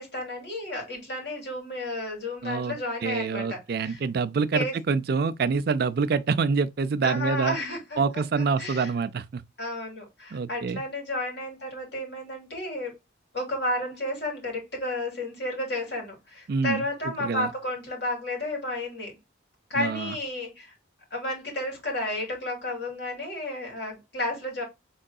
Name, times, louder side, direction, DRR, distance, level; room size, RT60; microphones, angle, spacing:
voice 1, 0.0-4.0 4.5-4.7 7.0-8.9 9.6-12.9 13.3-19.1 19.7-20.7 21.1-24.6, left 1 dB, 60° left, 2.4 m, -32 dB
voice 2, 2.4-2.7 3.0-7.6 8.0-9.4 10.3-10.8 16.5-16.8 17.2-17.5 19.8-20.1, right 5 dB, 50° right, 0.4 m, -26 dB
5.5 x 3.7 x 2.3 m
head